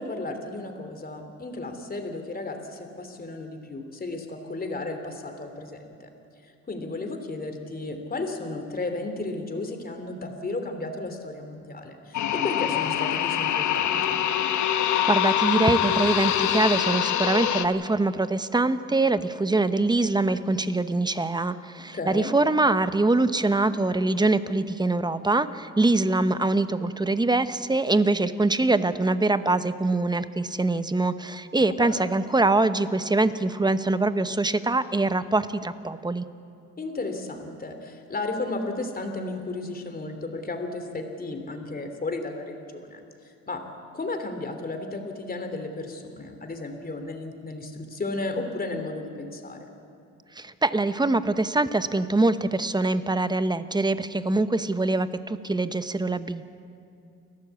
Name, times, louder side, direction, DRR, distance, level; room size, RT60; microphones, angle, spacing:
voice 1, 0.0-6.1 6.4-14.2 21.9-22.3 36.8-43.6 43.9-49.7, left 2 dB, 30° left, 6 dB, 2.9 m, -34 dB
sound 1, 12.1-17.7, left 10 dB, 70° left, 1.1 m, -24 dB
voice 2, 14.7-36.3 50.4-56.5, right 2 dB, 15° right, 12 dB, 0.9 m, -24 dB
29.5 x 12.0 x 8.2 m, 2.6 s
cardioid pair, 90°, 30 cm